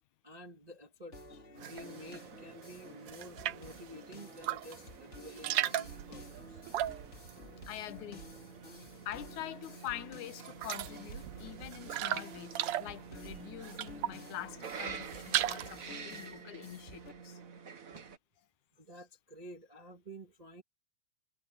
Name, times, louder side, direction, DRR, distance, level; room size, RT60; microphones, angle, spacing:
voice 1, 0.2-6.6 17.9-18.0 18.8-20.6, equal, 15° right, 1.7 m, -51 dB
sound 1, 1.1-17.1, left 2 dB, 25° left, 2.4 m, -53 dB
sound 2, 1.6-18.2, right 6 dB, 50° right, 1.0 m, -50 dB
sound 3, 1.6-2.2 2.6-3.8 4.3-4.9 5.1-8.6 8.8-9.5 9.9-10.0 10.3-14.3 14.7-15.8, right 13 dB, 75° right, 1.4 m, -37 dB
voice 2, 7.7-8.2 9.1-17.4, left 13 dB, 90° left, 2.5 m, -45 dB
omnidirectional pair, 3.3 m